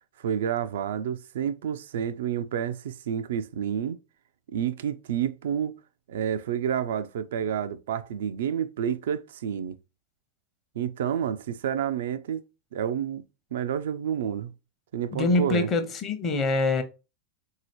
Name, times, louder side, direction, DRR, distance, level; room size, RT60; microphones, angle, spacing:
voice 1, 0.2-4.0 4.5-5.7 6.1-9.8 10.8-12.4 12.7-13.2 13.5-14.5 14.9-15.7, right 9 dB, 60° right, 0.3 m, -29 dB
voice 2, 15.1-16.8, left 3 dB, 30° left, 0.7 m, -24 dB
3.9 x 2.7 x 3.0 m
figure-of-eight pair, 90°, 0 cm